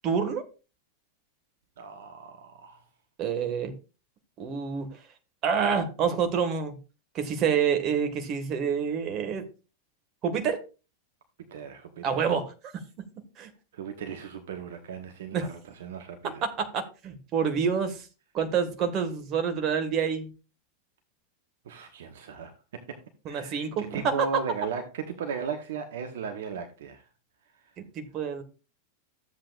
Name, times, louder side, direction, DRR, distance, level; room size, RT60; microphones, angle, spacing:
voice 1, 0.0-0.4 3.2-3.8 4.4-5.0 5.4-6.8 7.1-9.5 10.2-10.6 12.0-12.7 13.4-13.5 15.3-15.5 16.2-18.1 18.3-20.3 23.2-24.4 27.8-28.4, right 6 dB, 35° right, 1.7 m, -28 dB
voice 2, 1.8-2.8 11.5-12.2 13.7-16.4 21.6-23.0 23.3-27.0, right 6 dB, 60° right, 1.0 m, -37 dB
13.0 x 7.8 x 2.5 m
figure-of-eight pair, 90°, 0 cm